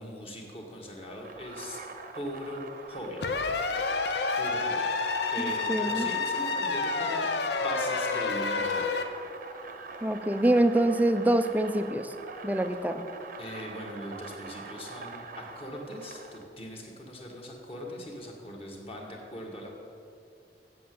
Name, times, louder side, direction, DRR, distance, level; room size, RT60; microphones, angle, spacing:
voice 1, 0.0-1.8 2.1-3.2 4.4-4.9 5.3-8.9 13.4-19.8, equal, 35° left, -1 dB, 1.7 m, -40 dB
sound 1, 1.2-16.4, right 3 dB, 50° right, 0.8 m, -43 dB
sound 2, 3.2-9.0, left 4 dB, 65° left, 0.7 m, -29 dB
voice 2, 5.7-6.1 10.0-12.1 12.4-13.0, right 1 dB, 10° right, 9 dB, 0.4 m, -25 dB
7.8 x 7.7 x 7.8 m, 2.6 s
head